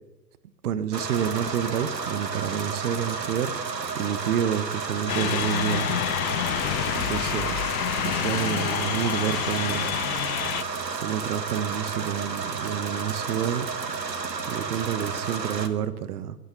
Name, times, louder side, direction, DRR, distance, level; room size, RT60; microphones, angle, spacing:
voice 1, 0.6-3.5 3.9-6.0 6.9-7.7 8.0-9.9 11.0-13.7 14.5-16.4, right 9 dB, 65° right, 13 dB, 1.2 m, -29 dB
sound 1, 0.9-15.7, right 5 dB, 90° right, 1.4 m, -32 dB
sound 2, 5.1-10.6, left 14 dB, 60° left, 0.6 m, -28 dB
21.5 x 9.0 x 6.9 m, 1.0 s
figure-of-eight pair, 100°, 49 cm